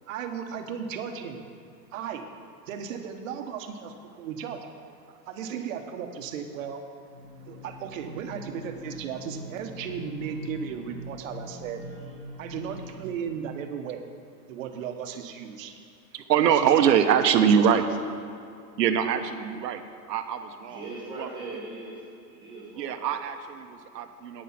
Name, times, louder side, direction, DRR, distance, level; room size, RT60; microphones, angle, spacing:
voice 1, 0.1-1.4 1.9-2.2 2.7-4.6 5.3-6.8 7.5-11.8 12.4-14.0 14.5-15.7 16.5-16.9 17.4-17.6, right 7 dB, 50° right, 6 dB, 1.2 m, -35 dB
sound 1, 7.1-13.1, equal, 35° left, 2.9 m, -42 dB
voice 2, 16.1-17.9 18.8-19.8 20.1-20.8 21.2-21.3 22.8-24.4, right 8 dB, 75° right, 8 dB, 1.1 m, -23 dB
voice 3, 20.6-23.1, right 2 dB, 10° right, -4 dB, 1.7 m, -40 dB
9.5 x 9.1 x 5.9 m, 2.5 s
supercardioid pair, 160°, 50 cm